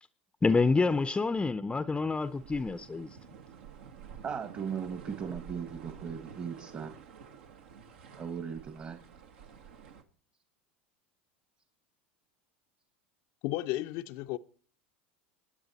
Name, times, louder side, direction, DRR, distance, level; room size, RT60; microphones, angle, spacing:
voice 1, 0.4-3.2, left 4 dB, 15° left, 0.6 m, -27 dB
sound 1, 2.2-10.0, right 7 dB, 75° right, 1.4 m, -50 dB
voice 2, 4.2-6.9 8.2-9.0, right 7 dB, 35° right, 1.3 m, -38 dB
voice 3, 13.4-14.4, left 16 dB, 60° left, 0.6 m, -33 dB
25.5 x 9.3 x 4.1 m
hypercardioid pair, 85°, 6 cm